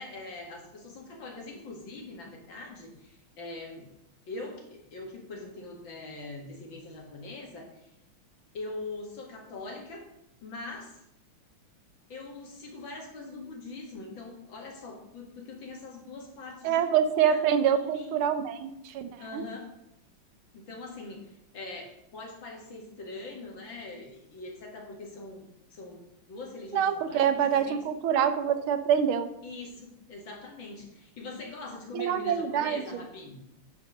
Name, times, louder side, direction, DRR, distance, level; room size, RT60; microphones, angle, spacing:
voice 1, 0.0-3.9 4.3-7.9 8.5-10.1 10.4-11.0 12.1-17.4 17.7-18.2 19.2-19.7 20.5-27.8 29.4-33.4, left 3 dB, 65° left, 0 dB, 2.7 m, -42 dB
voice 2, 16.6-19.4 26.7-29.3 31.9-33.0, right 8 dB, 85° right, 10 dB, 1.7 m, -26 dB
9.9 x 4.8 x 6.3 m, 0.83 s
omnidirectional pair, 2.3 m